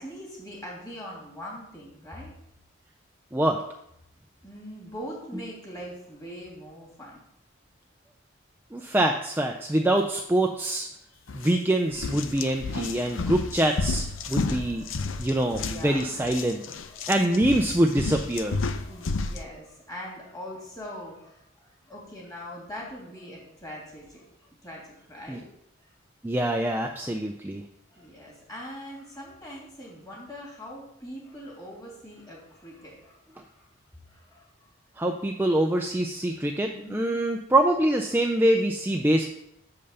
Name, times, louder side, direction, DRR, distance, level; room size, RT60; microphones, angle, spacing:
voice 1, 0.0-2.3 4.4-7.2 11.1-11.3 11.9-13.1 13.9-17.1 18.3-25.5 25.8-25.9 26.7-27.1 27.9-33.7 34.0-34.7 35.1-35.2 36.4-37.2 38.1-38.2 39.1-39.2, equal, 20° left, -4 dB, 3.0 m, -43 dB
voice 2, 3.3-3.6 8.7-10.9 11.3-14.8 15.2-16.6 17.1-18.6 25.3-25.4 26.2-27.6 35.0-39.2, right 1 dB, 10° right, 3 dB, 0.4 m, -24 dB
sound 1, 11.3-11.5 11.9-19.4, left 3 dB, 80° left, 0.6 m, -31 dB
6.7 x 5.5 x 6.7 m, 0.78 s
head